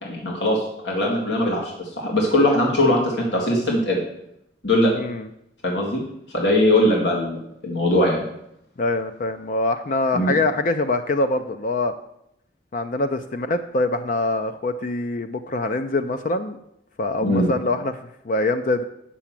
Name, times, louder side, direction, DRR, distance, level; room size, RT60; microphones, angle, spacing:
voice 1, 0.0-4.0 4.6-4.9 5.6-6.0 6.3-8.2 10.1-10.3 17.2-17.5, left 1 dB, 85° left, -1 dB, 2.0 m, -20 dB
voice 2, 4.9-5.3 8.8-11.9 12.7-16.6 17.0-18.8, left 2 dB, 50° left, 8 dB, 0.5 m, -24 dB
8.4 x 5.8 x 7.4 m, 0.78 s
head